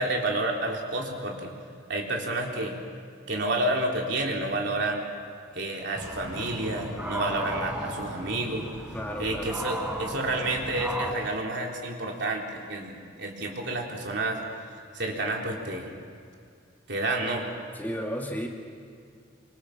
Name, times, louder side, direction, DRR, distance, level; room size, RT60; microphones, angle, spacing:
voice 1, 0.0-1.5 1.9-2.8 3.3-5.0 5.5-8.6 9.2-14.4 14.9-15.9 16.9-17.4, right 2 dB, 60° right, 0 dB, 3.8 m, -30 dB
sound 1, 5.9-11.1, equal, 5° right, 7.7 m, -35 dB
voice 2, 8.9-9.5 17.7-18.5, equal, 10° left, 0 dB, 2.3 m, -33 dB
27.0 x 25.0 x 6.0 m, 2.4 s
head